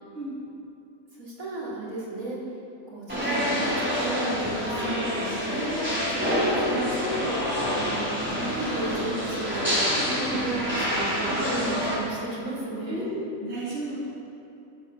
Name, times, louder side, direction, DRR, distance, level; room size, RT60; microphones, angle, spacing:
voice 1, 1.1-2.4 2.9-5.1 5.5-7.4 7.8-9.8 10.3-13.1, right 2 dB, 75° right, -7 dB, 3.8 m, -34 dB
sound 1, 3.1-11.9, equal, 5° right, 4.0 m, -27 dB
voice 2, 10.0-10.4 12.9-13.1 13.4-14.0, right 1 dB, 50° right, -7 dB, 2.8 m, -34 dB
14.0 x 9.1 x 7.1 m, 2.9 s
omnidirectional pair, 1.5 m